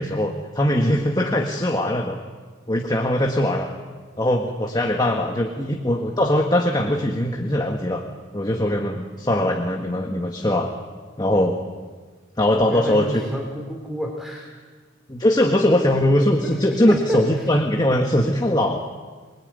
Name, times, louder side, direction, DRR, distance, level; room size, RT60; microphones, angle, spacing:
voice 1, 0.0-2.2 2.7-3.7 4.2-8.0 8.3-10.7 11.2-11.6 12.4-13.2 15.1-18.8, left 1 dB, 20° left, 2 dB, 1.6 m, -21 dB
voice 2, 12.7-14.5 16.4-16.5 16.9-17.5, equal, ahead, 1 dB, 3.1 m, -29 dB
25.5 x 21.0 x 9.5 m, 1.5 s
head